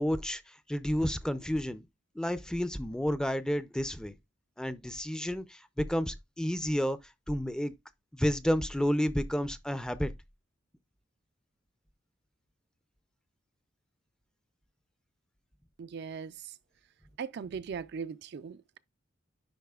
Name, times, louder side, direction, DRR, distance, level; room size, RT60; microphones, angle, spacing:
voice 1, 0.0-1.9 2.2-4.1 4.6-7.0 7.3-7.7 8.1-10.1, equal, 5° left, 0.4 m, -31 dB
voice 2, 15.8-16.5 17.2-18.8, right 6 dB, 60° right, 0.3 m, -39 dB
10.5 x 4.0 x 2.3 m
head